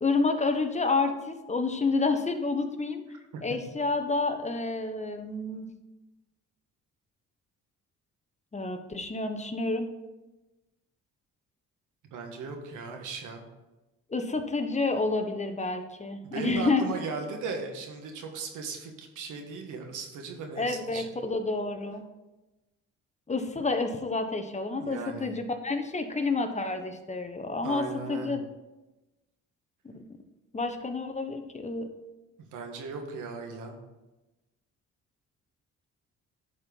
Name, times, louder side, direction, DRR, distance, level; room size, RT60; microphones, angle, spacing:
voice 1, 0.0-3.0 3.4-5.7 8.5-9.9 14.1-16.9 20.6-22.0 23.3-28.4 30.5-31.9, left 3 dB, 25° left, 6 dB, 1.0 m, -29 dB
voice 2, 12.1-13.4 16.2-21.1 24.8-25.4 27.6-28.4 32.5-33.7, right 4 dB, 90° right, 3 dB, 1.6 m, -37 dB
11.0 x 4.6 x 5.4 m, 1.0 s
cardioid pair, 90°, 30 cm